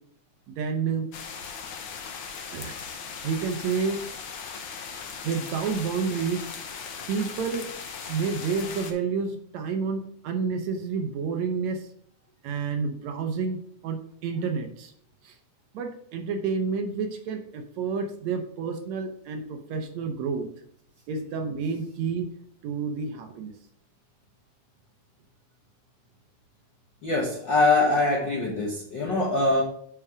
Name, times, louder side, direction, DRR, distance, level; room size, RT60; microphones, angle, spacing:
voice 1, 0.5-1.1 1.4-1.5 2.5-2.8 3.2-4.0 5.2-6.4 7.1-7.7 8.1-11.9 12.4-13.6 13.8-14.9 15.2-15.3 15.7-20.5 21.1-22.3 22.6-23.5, right 5 dB, 70° right, 5 dB, 1.9 m, -29 dB
sound 1, 1.1-8.9, left 6 dB, 75° left, 1.1 m, -38 dB
voice 2, 27.0-29.6, left 2 dB, 55° left, -2 dB, 1.2 m, -23 dB
9.0 x 4.6 x 4.8 m, 0.64 s
omnidirectional pair, 3.6 m